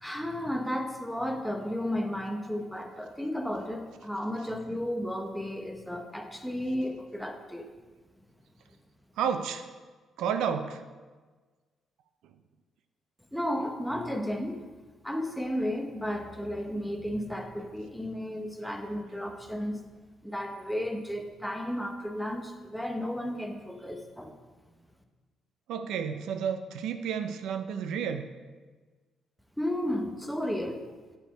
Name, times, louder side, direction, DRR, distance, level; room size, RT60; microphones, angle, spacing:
voice 1, 0.0-7.7 13.3-14.6 15.0-19.8 20.2-24.3 29.6-30.9, equal, ahead, 4 dB, 0.8 m, -33 dB
voice 2, 9.2-9.7 10.2-10.8 25.7-28.3, right 7 dB, 85° right, 8 dB, 0.4 m, -31 dB
6.8 x 4.6 x 4.5 m, 1.4 s
cardioid pair, 90°, 0 cm